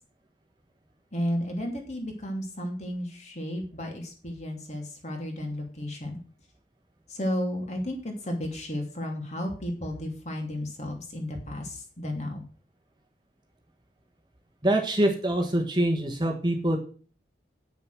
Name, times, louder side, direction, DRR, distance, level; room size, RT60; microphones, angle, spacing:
voice 1, 1.1-6.2 7.1-12.4, left 1 dB, 40° left, 2 dB, 2.7 m, -33 dB
voice 2, 14.6-16.8, right 1 dB, 25° right, 2 dB, 1.4 m, -24 dB
9.2 x 6.8 x 6.2 m, 0.39 s
head